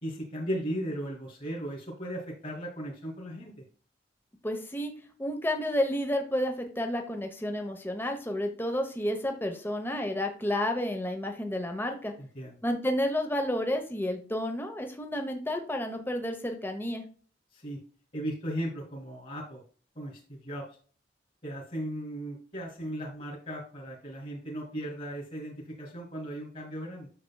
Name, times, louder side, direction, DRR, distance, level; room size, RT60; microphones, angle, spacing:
voice 1, 0.0-3.6 12.2-12.6 17.5-17.8 18.1-19.6 19.9-20.7 21.4-27.1, equal, 40° left, -3 dB, 2.6 m, -37 dB
voice 2, 4.4-4.9 5.2-12.1 12.6-17.0, left 1 dB, 10° left, 4 dB, 1.0 m, -31 dB
8.6 x 6.8 x 2.3 m, 0.42 s
head